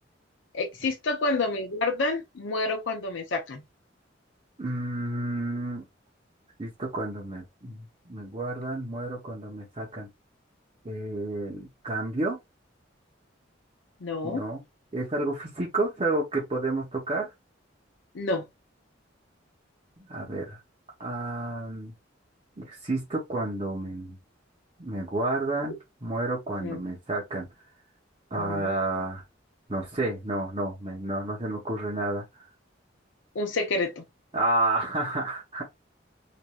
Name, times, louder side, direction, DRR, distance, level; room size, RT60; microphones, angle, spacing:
voice 1, 0.5-3.6 14.0-14.4 18.1-18.5 26.6-26.8 28.4-28.7 33.3-34.0, left 3 dB, 80° left, 0.6 m, -29 dB
voice 2, 4.6-5.9 6.6-10.1 10.8-12.4 14.2-14.6 14.9-17.3 20.0-20.6 21.0-21.9 22.6-24.2 24.8-25.8 26.0-27.5 28.3-29.2 29.7-32.4 34.3-35.6, right 2 dB, 30° right, 0.9 m, -30 dB
3.0 x 2.5 x 2.3 m
head